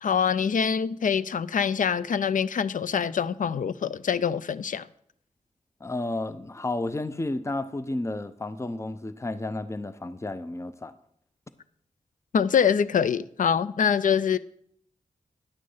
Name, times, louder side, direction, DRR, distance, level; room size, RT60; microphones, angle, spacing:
voice 1, 0.0-4.9 12.3-14.4, left 7 dB, 70° left, 0.4 m, -24 dB
voice 2, 5.8-10.9, left 2 dB, 20° left, 0.6 m, -32 dB
9.8 x 6.4 x 5.6 m
cardioid pair, 55°, 14 cm